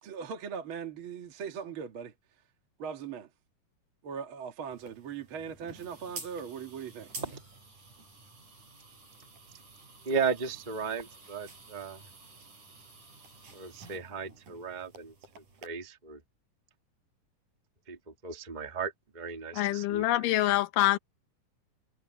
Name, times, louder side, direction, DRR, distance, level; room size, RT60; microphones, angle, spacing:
voice 1, 0.0-2.1 2.8-3.3 4.0-7.1, right 7 dB, 45° right, 2.1 m, -39 dB
sound 1, 4.7-15.7, right 3 dB, 65° right, 9.1 m, -50 dB
voice 2, 10.0-12.0 13.5-15.1 15.6-16.2 17.9-20.1, right 5 dB, 20° right, 1.4 m, -35 dB
voice 3, 19.5-21.0, left 15 dB, 85° left, 2.6 m, -26 dB
omnidirectional pair, 3.8 m